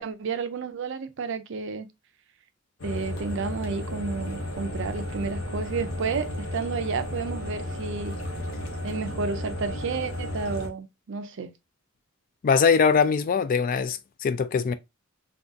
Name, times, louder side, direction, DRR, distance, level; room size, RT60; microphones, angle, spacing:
voice 1, 0.0-1.9 2.8-8.1 8.8-11.5, right 5 dB, 65° right, 0.5 m, -31 dB
sound 1, 2.8-10.7, left 1 dB, 85° left, 1.0 m, -33 dB
voice 2, 12.4-14.7, left 6 dB, 45° left, 0.3 m, -22 dB
3.6 x 2.3 x 2.6 m
head